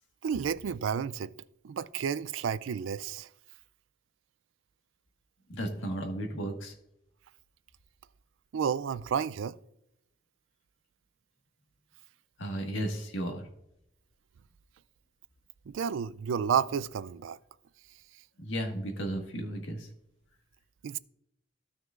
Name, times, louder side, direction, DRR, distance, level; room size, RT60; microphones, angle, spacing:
voice 1, 0.2-1.3 1.6-3.3 8.5-9.6 15.7-17.4 20.8-21.0, right 7 dB, 85° right, 0.4 m, -31 dB
voice 2, 5.5-6.7 12.4-13.4 18.4-19.9, right 1 dB, 85° left, 1.6 m, -34 dB
15.5 x 6.2 x 2.4 m
head